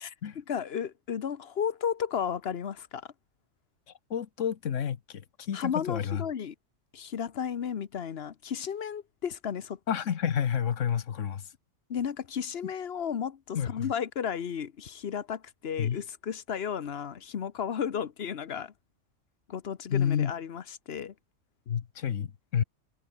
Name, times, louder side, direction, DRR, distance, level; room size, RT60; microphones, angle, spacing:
voice 1, 0.0-3.1 5.5-6.5 6.9-9.8 11.9-18.7 19.5-21.1, left 8 dB, 55° left, 1.1 m, -34 dB
voice 2, 4.1-5.2 5.5-6.2 9.9-11.4 13.5-13.9 15.8-16.0 19.9-20.3 21.7-22.6, left 8 dB, 80° left, 1.4 m, -29 dB
omnidirectional pair, 1.3 m